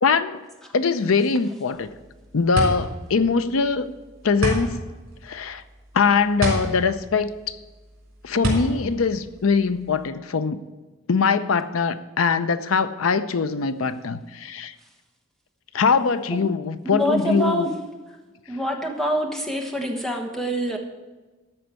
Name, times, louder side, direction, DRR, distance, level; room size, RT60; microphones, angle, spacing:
voice 1, 0.0-0.4 0.7-1.9 2.3-3.9 4.2-4.9 5.2-5.6 5.9-7.6 8.2-10.6 11.1-14.7 15.7-17.7, left 5 dB, 85° left, 13 dB, 0.6 m, -22 dB
sound 1, 1.7-10.1, right 1 dB, 70° right, 3.8 m, -28 dB
voice 2, 16.9-17.7 18.5-20.8, equal, ahead, 1 dB, 1.2 m, -25 dB
13.0 x 4.5 x 8.1 m, 1.2 s
head